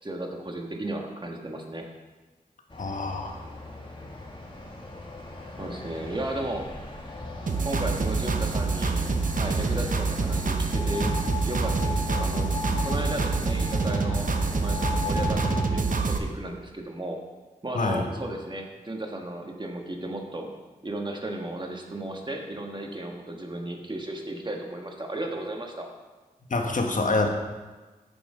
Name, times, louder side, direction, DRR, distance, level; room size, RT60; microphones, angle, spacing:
voice 1, 0.0-1.8 5.6-6.7 7.6-9.1 9.3-12.5 12.8-17.2 17.6-20.5 20.8-25.9, right 1 dB, 30° right, 2 dB, 1.5 m, -34 dB
voice 2, 2.7-3.4 17.7-18.1 26.5-27.3, left 3 dB, 55° left, 3 dB, 1.3 m, -26 dB
sound 1, 2.7-15.7, left 2 dB, 35° left, 2.0 m, -35 dB
sound 2, 7.5-16.2, right 4 dB, 60° right, 0.8 m, -26 dB
7.0 x 7.0 x 5.0 m, 1.3 s
cardioid pair, 40°, 16 cm